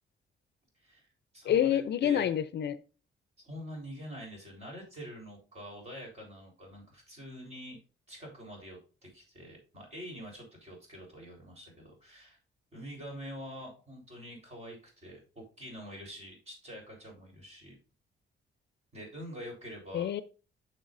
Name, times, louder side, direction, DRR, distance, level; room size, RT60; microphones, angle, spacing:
voice 1, 0.7-1.1 1.3-2.3 3.4-7.8 8.1-12.4 12.7-17.8 18.9-20.1, equal, 35° right, -1 dB, 3.9 m, -46 dB
voice 2, 1.4-2.8 19.9-20.2, left 10 dB, 60° left, 14 dB, 0.5 m, -27 dB
9.4 x 6.6 x 2.6 m, 0.34 s
wide cardioid pair, 170°, 20 cm